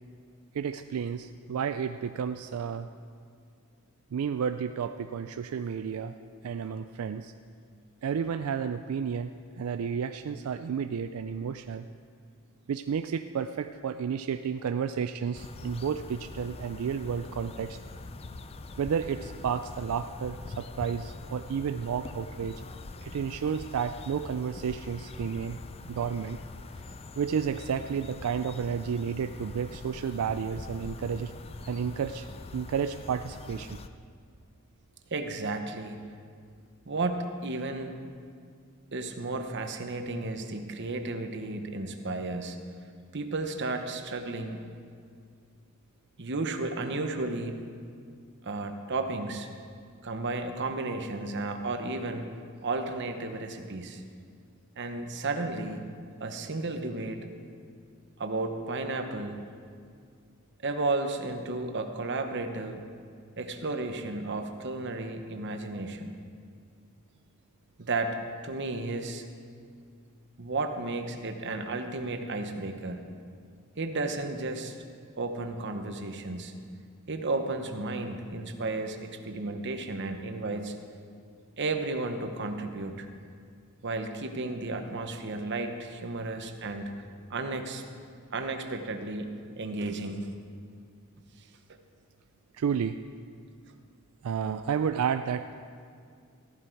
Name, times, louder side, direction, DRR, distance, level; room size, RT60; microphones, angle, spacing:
voice 1, 0.5-2.9 4.1-6.1 6.4-7.3 8.0-9.3 9.6-11.9 12.7-17.8 18.8-22.6 23.0-25.6 25.9-26.4 27.2-31.3 31.6-33.8 92.5-93.0 94.2-95.5, right 7 dB, 85° right, 9 dB, 0.4 m, -31 dB
sound 1, 15.3-33.9, left 3 dB, 25° left, 0.4 m, -44 dB
voice 2, 35.1-36.1 36.9-38.0 38.9-42.6 43.1-44.6 46.2-47.6 48.4-49.5 50.0-52.3 52.6-54.0 54.8-55.9 56.2-57.2 58.2-59.4 60.6-62.8 63.4-66.2 67.8-68.2 68.4-69.2 70.4-73.0 73.8-74.8 75.2-76.5 77.1-80.7 81.6-83.1 83.8-86.9 87.3-87.8 88.3-90.3, right 2 dB, 55° right, 6 dB, 1.0 m, -33 dB
14.5 x 11.0 x 4.6 m, 2.2 s
head